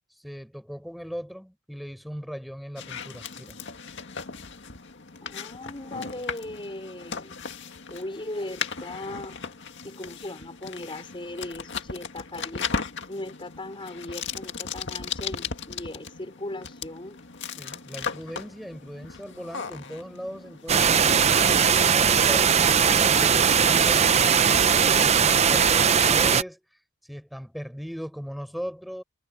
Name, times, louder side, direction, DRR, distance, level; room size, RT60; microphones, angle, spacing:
voice 1, 0.2-3.6 17.6-20.9 21.5-24.1 24.5-26.6 27.0-29.0, equal, ahead, 4.7 m, -38 dB
sound 1, 2.8-22.5, left 5 dB, 60° left, 2.1 m, -37 dB
voice 2, 5.2-7.4 7.9-9.4 9.8-12.7 13.1-17.2, left 1 dB, 25° left, 4.2 m, -38 dB
sound 2, 20.7-26.4, right 7 dB, 30° right, 0.6 m, -19 dB
head